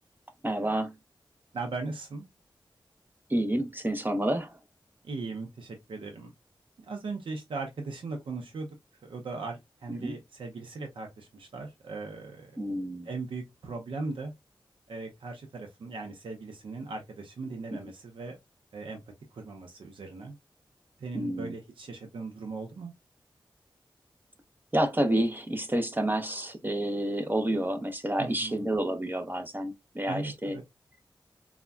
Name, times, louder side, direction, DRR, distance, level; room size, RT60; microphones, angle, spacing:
voice 1, 0.4-0.9 3.3-4.6 10.0-10.1 12.6-13.1 17.7-17.8 21.1-21.5 24.7-30.6, right 1 dB, 20° right, 0.5 m, -29 dB
voice 2, 1.5-2.3 5.0-6.3 6.8-8.7 9.0-12.5 13.0-14.3 14.9-18.4 18.7-19.0 19.3-20.4 21.0-22.9 28.2-28.6 30.1-30.6, right 3 dB, 90° right, 0.5 m, -38 dB
3.4 x 2.1 x 2.2 m
cardioid pair, 55°, 9 cm